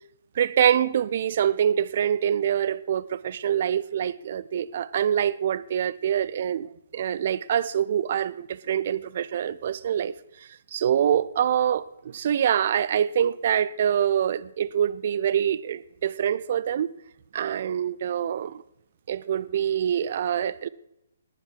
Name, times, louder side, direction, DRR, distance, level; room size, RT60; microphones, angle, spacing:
voice 1, 0.4-10.2 10.7-16.9 17.3-18.6 19.1-20.7, right 9 dB, 45° right, 0.5 m, -25 dB
19.5 x 7.3 x 4.8 m
figure-of-eight pair, 130°, 0 cm